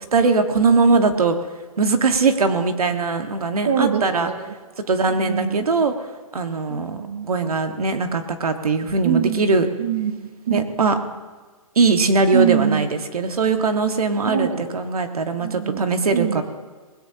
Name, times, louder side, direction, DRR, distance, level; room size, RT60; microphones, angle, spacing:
voice 1, 0.1-1.4 1.8-4.3 4.8-5.9 6.3-9.7 10.5-10.9 11.7-16.4, right 4 dB, 75° right, 6 dB, 1.7 m, -20 dB
voice 2, 3.7-4.5 5.1-5.6 6.7-7.3 9.0-9.5 9.8-11.0 12.3-12.9 14.3-14.7 15.4-15.8 16.1-16.4, right 8 dB, 20° right, 4 dB, 0.7 m, -24 dB
20.5 x 17.0 x 2.9 m, 1.4 s
hypercardioid pair, 180°, 19 cm